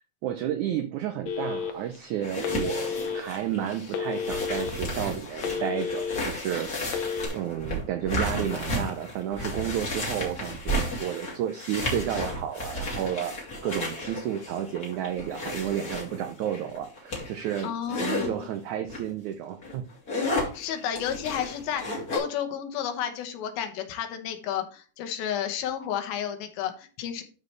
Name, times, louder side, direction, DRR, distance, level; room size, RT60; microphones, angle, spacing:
voice 1, 0.0-6.7 7.3-19.9, right 10 dB, 85° right, 7 dB, 1.7 m, -32 dB
Telephone, 1.3-2.0 2.4-3.2 3.9-4.7 5.1-6.2 6.8-7.3, left 6 dB, 70° left, 1.6 m, -31 dB
sound 1, 2.2-18.3 18.9-19.1 19.5-22.2, left 1 dB, 30° left, 2.4 m, -33 dB
voice 2, 17.6-18.5 20.5-27.2, left 9 dB, 90° left, 7 dB, 2.9 m, -32 dB
12.5 x 4.2 x 3.2 m, 0.38 s
omnidirectional pair, 4.2 m